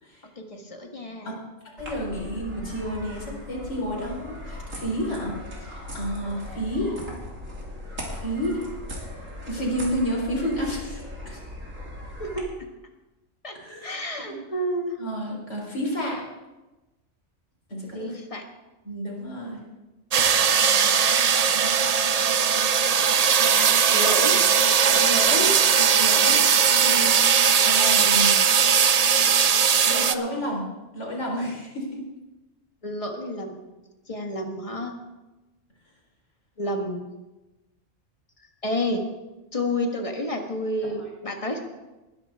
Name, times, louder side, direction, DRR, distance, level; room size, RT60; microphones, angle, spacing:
voice 1, 0.4-1.3 12.2-12.7 13.4-13.6 13.8-15.0 17.9-18.4 23.5-24.4 32.8-33.6 34.1-35.0 36.6-37.1 38.6-39.0 39.5-41.6, left 1 dB, 25° left, 3 dB, 1.6 m, -30 dB
voice 2, 1.8-5.3 5.6-7.0 8.1-8.6 9.5-11.4 13.5-13.9 14.3-14.4 15.0-16.2 17.7-18.2 18.8-19.6 24.9-27.3 27.6-28.4 29.8-30.6 30.9-32.0, equal, 65° left, -2 dB, 4.5 m, -30 dB
sound 1, 1.8-12.4, left 1 dB, 85° right, 3.1 m, -38 dB
sound 2, 20.1-30.2, right 7 dB, 50° right, 0.4 m, -19 dB
20.0 x 11.0 x 3.6 m, 1.1 s
omnidirectional pair, 1.3 m